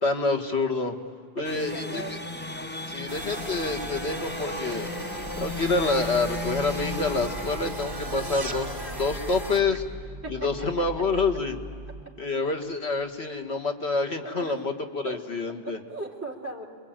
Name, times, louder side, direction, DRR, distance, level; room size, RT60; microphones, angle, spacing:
voice 1, 0.0-1.0 1.4-2.0 2.9-4.9 5.4-9.8 10.3-11.6 12.2-15.8, left 3 dB, 85° left, 3 dB, 2.0 m, -27 dB
sound 1, 1.4-8.4, left 2 dB, 10° left, 0.6 m, -36 dB
voice 2, 1.4-2.2 9.7-9.8 10.2-11.2 11.9-12.1 14.2-14.6 15.0-16.7, right 2 dB, 15° right, -4 dB, 3.1 m, -39 dB
sound 2, 3.1-9.6, right 1 dB, 60° right, 3.0 m, -36 dB
sound 3, 5.2-12.0, right 2 dB, 35° right, 3.1 m, -42 dB
28.0 x 22.5 x 9.0 m, 2.2 s
omnidirectional pair, 1.0 m